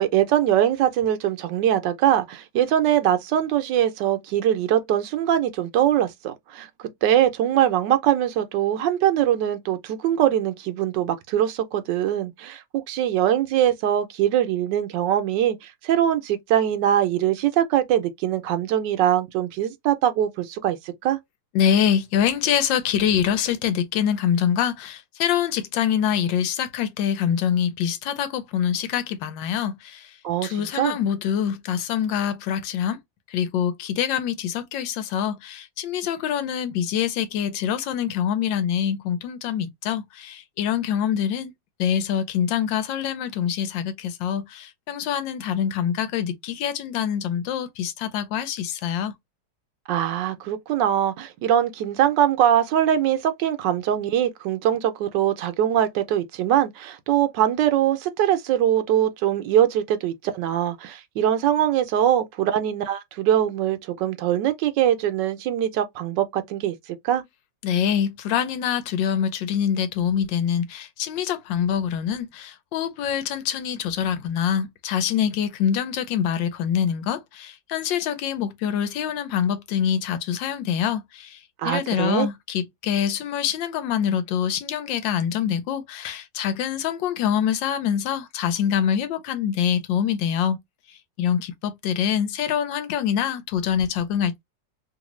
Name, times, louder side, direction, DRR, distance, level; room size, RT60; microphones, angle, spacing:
voice 1, 0.0-6.7 7.0-20.8 21.0-21.2 30.2-31.0 49.9-66.8 67.0-67.2 81.6-82.3, right 11 dB, 75° right, 1.2 m, -22 dB
voice 2, 21.5-30.1 30.4-33.0 33.3-41.5 41.8-49.1 67.6-81.4 81.6-90.6 91.2-94.4, left 9 dB, 80° left, 1.4 m, -25 dB
3.1 x 2.6 x 3.0 m
omnidirectional pair, 2.0 m